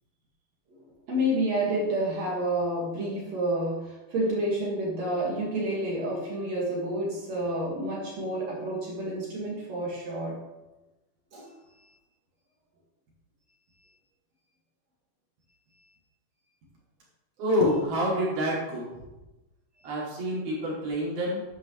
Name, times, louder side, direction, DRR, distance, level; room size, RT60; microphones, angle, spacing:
voice 1, 1.1-10.4 11.3-11.5, right 1 dB, 50° right, -3 dB, 3.0 m, -29 dB
voice 2, 17.4-19.0 19.8-21.4, equal, 75° right, -6 dB, 5.1 m, -27 dB
12.0 x 8.8 x 3.3 m, 1.0 s
omnidirectional pair, 4.4 m